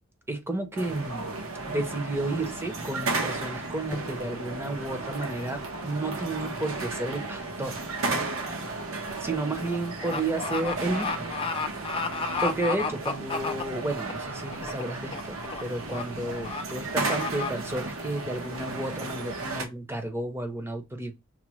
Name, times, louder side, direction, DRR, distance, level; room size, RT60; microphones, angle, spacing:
voice 1, 0.3-1.3 1.7-7.8 8.1-8.3 9.2-11.3 12.1-21.1, right 2 dB, 10° right, 0.7 m, -32 dB
sound 1, 0.7-19.6, right 3 dB, 75° right, 0.9 m, -34 dB
sound 2, 3.9-11.6, left 1 dB, 50° left, 0.8 m, -48 dB
sound 3, 8.6-14.1 14.5-14.8 15.1-15.6 15.9-16.0 16.4-16.6 17.0-17.5, left 4 dB, 25° left, 0.4 m, -32 dB
5.9 x 2.1 x 3.0 m
head